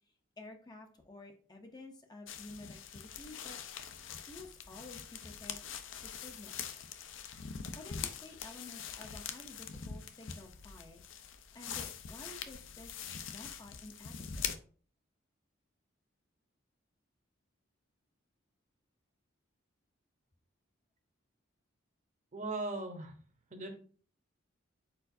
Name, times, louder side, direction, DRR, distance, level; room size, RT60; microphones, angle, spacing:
voice 1, 0.4-3.6 4.3-5.6 6.0-6.6 7.8-11.0 11.5-14.5, left 2 dB, 20° left, 3 dB, 0.5 m, -52 dB
sound 1, 2.3-14.6, left 7 dB, 70° left, 0.5 m, -43 dB
voice 2, 22.3-23.1 23.5-23.7, right 2 dB, 35° right, 5 dB, 0.8 m, -38 dB
4.5 x 4.3 x 2.6 m, 0.42 s
head